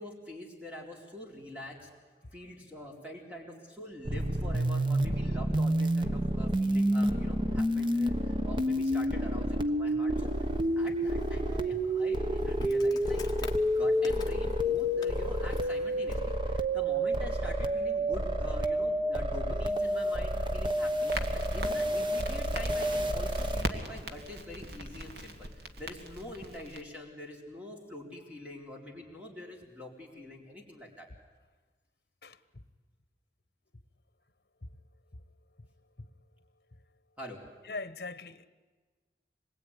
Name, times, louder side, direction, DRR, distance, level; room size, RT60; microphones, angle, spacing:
voice 1, 0.0-1.9 2.3-10.5 10.8-31.1 37.2-37.4, left 1 dB, 5° right, 4.0 m, -45 dB
sound 1, 4.1-23.6, equal, 25° right, 1.1 m, -29 dB
Insect, 10.2-16.4, left 3 dB, 25° left, 1.4 m, -50 dB
Crackle, 21.1-26.8, right 1 dB, 65° right, 2.0 m, -40 dB
voice 2, 32.2-32.6 36.0-36.1 37.6-38.5, left 3 dB, 60° left, 1.2 m, -41 dB
26.0 x 21.0 x 9.9 m
head